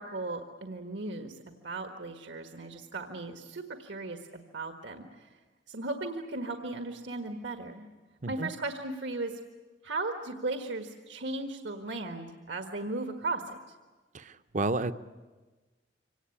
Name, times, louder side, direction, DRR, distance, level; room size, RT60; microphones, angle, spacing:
voice 1, 0.0-5.3 5.7-7.9 8.3-9.3 9.8-13.6, right 2 dB, 80° right, 5 dB, 1.6 m, -36 dB
voice 2, 14.1-14.9, right 2 dB, 45° right, 12 dB, 0.7 m, -31 dB
25.5 x 18.5 x 10.0 m, 1.3 s
head